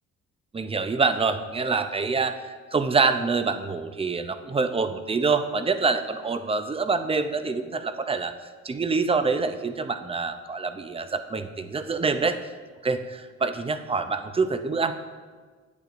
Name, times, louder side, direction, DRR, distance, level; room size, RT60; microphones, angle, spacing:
voice 1, 0.5-8.3 8.6-12.4 12.8-14.9, right 4 dB, 20° right, 9 dB, 0.5 m, -26 dB
8.7 x 8.3 x 2.5 m, 1.5 s
cardioid pair, 90°, 30 cm